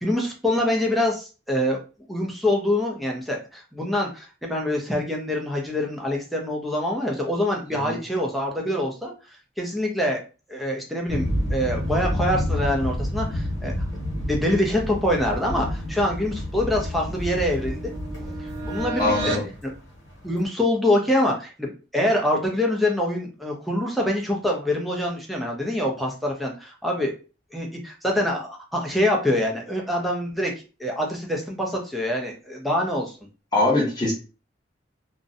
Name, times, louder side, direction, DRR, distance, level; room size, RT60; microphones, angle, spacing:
voice 1, 0.0-1.8 2.1-9.1 9.6-10.2 10.5-13.7 14.2-17.8 18.6-19.7 20.2-27.1 27.5-30.5 30.8-33.1, left 1 dB, ahead, -1 dB, 0.5 m, -25 dB
sound 1, 11.1-20.4, left 1 dB, 85° left, 1.0 m, -29 dB
sound 2, 16.4-19.5, right 1 dB, 75° right, 0.6 m, -34 dB
voice 2, 19.0-19.5 33.5-34.1, left 2 dB, 20° left, -3 dB, 1.0 m, -22 dB
2.4 x 2.1 x 2.6 m, 0.34 s
head